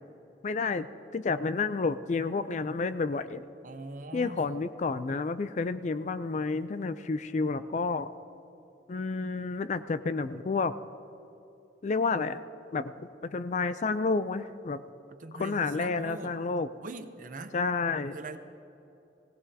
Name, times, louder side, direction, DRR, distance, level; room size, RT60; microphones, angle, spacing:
voice 1, 0.4-0.9 1.1-3.4 4.1-8.1 8.9-10.7 11.8-12.4 12.7-14.8 15.3-16.7 17.5-18.1, left 4 dB, 40° left, 12 dB, 0.4 m, -30 dB
voice 2, 3.6-4.4 15.1-16.4 16.8-17.6 18.1-18.4, right 3 dB, 45° right, 9 dB, 0.7 m, -42 dB
20.5 x 17.0 x 2.8 m, 2.9 s
head